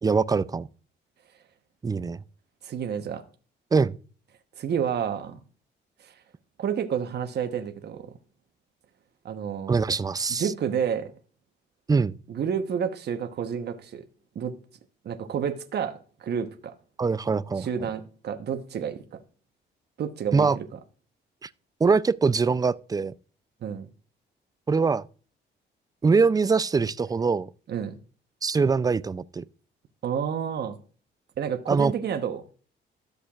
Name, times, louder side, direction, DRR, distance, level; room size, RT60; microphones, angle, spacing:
voice 1, 0.0-0.7 1.8-2.2 3.7-4.0 9.7-10.5 11.9-12.2 17.0-17.7 20.3-20.6 21.4-21.5 21.8-23.1 24.7-25.1 26.0-27.5 28.4-29.4 31.7-31.9, right 4 dB, 20° right, 0.4 m, -23 dB
voice 2, 2.6-3.2 4.6-5.4 6.0-6.1 6.6-8.1 9.2-9.8 10.4-11.1 12.3-14.0 14.3-14.5 15.0-15.9 16.2-16.7 17.6-19.0 20.0-20.7 23.6-23.9 27.7-28.0 30.0-30.8 31.4-32.4, right 7 dB, 55° right, 1.1 m, -29 dB
13.0 x 6.6 x 2.4 m
cardioid pair, 90°, 20 cm